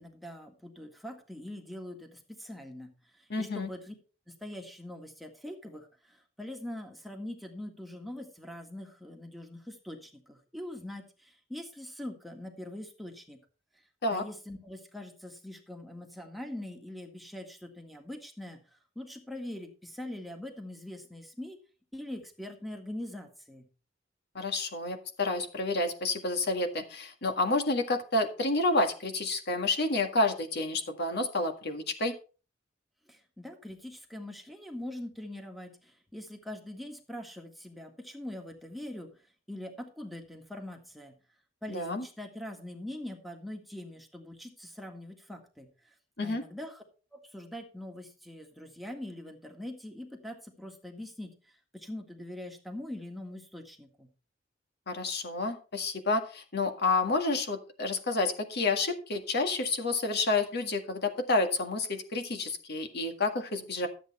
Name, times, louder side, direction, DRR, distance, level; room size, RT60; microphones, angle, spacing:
voice 1, 0.0-3.9 4.3-13.4 14.1-21.6 21.9-23.7 33.1-39.1 39.5-41.1 41.6-45.9 46.2-46.8 47.1-54.1, left 1 dB, ahead, 2 dB, 1.8 m, -43 dB
voice 2, 3.3-3.7 14.0-14.2 24.4-32.2 41.7-42.1 46.2-46.4 54.9-63.9, left 2 dB, 60° left, 5 dB, 1.8 m, -29 dB
13.0 x 8.2 x 4.2 m, 0.36 s
head